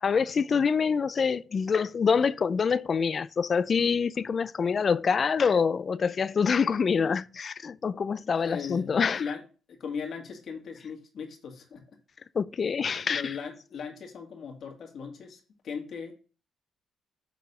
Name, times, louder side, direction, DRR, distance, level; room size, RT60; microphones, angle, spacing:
voice 1, 0.0-9.2 12.3-13.3, left 6 dB, 45° left, 0.3 m, -26 dB
voice 2, 8.3-9.4 9.7-11.8 12.9-16.1, left 6 dB, 60° left, 1.9 m, -38 dB
6.6 x 4.1 x 5.4 m
cardioid pair, 90°, 0 cm